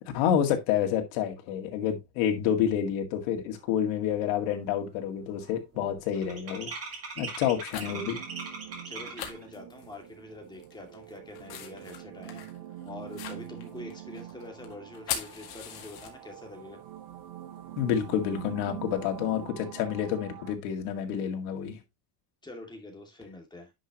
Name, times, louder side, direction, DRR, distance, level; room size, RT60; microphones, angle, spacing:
voice 1, 0.1-6.7 7.2-8.2 17.8-21.8, left 9 dB, 85° left, 2.1 m, -28 dB
sound 1, 3.7-3.8 4.2-4.5 4.8-9.4, right 4 dB, 30° right, 2.5 m, -41 dB
sound 2, 4.6-4.7 5.4-5.8 6.2-6.5 7.3-8.1 8.4-8.5 8.7-8.8 9.2-10.2 10.5-16.6 16.9-19.4, left 9 dB, 50° left, 2.1 m, -41 dB
sound 3, 7.8-20.6, right 12 dB, 75° right, 1.7 m, -45 dB
voice 2, 8.9-12.4 12.8-16.8 22.4-23.7, left 2 dB, 10° left, 2.2 m, -45 dB
10.0 x 5.8 x 2.9 m
cardioid pair, 155°, 47 cm